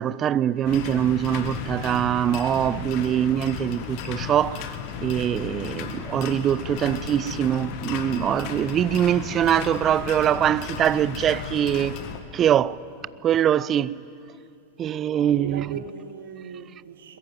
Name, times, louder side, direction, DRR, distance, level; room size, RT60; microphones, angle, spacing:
voice 1, 0.0-11.9 12.3-12.8 13.2-14.0 14.8-15.8, right 10 dB, 30° right, 0.5 m, -23 dB
sound 1, 0.6-12.2, left 7 dB, 45° left, 1.8 m, -34 dB
voice 2, 15.1-17.2, right 6 dB, 65° right, 1.9 m, -39 dB
22.0 x 21.0 x 8.9 m
figure-of-eight pair, 90°, 0 cm